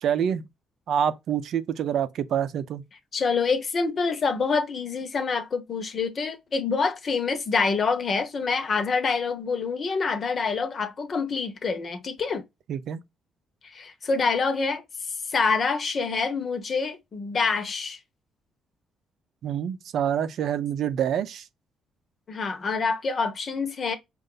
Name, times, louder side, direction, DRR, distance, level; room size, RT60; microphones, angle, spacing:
voice 1, 0.0-0.4 0.9-2.8 12.7-13.0 19.4-21.5, right 9 dB, 70° right, 0.6 m, -26 dB
voice 2, 3.1-12.4 13.6-18.0 22.3-24.0, left 4 dB, 45° left, 1.0 m, -26 dB
5.2 x 2.5 x 3.8 m
cardioid pair, 90°, 0 cm